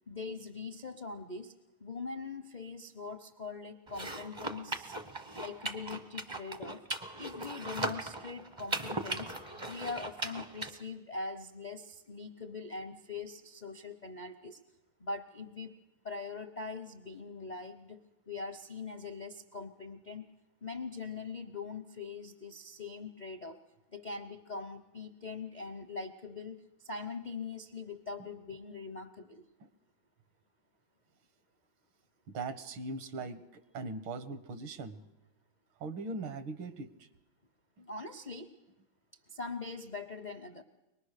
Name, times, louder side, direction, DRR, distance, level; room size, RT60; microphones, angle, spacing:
voice 1, 0.1-1.5 1.8-5.0 5.4-6.8 7.2-9.4 9.7-14.6 15.0-15.8 16.0-20.3 20.6-23.6 23.9-29.4 37.9-38.5 39.3-40.6, left 4 dB, 50° left, 8 dB, 0.5 m, -42 dB
sound 1, 3.9-10.7, right 1 dB, 30° right, 0.5 m, -39 dB
voice 2, 32.3-33.4 33.7-35.0 35.8-37.1 37.8-37.9, right 3 dB, 80° right, 12 dB, 1.9 m, -40 dB
24.0 x 19.5 x 6.6 m, 0.96 s
omnidirectional pair, 2.3 m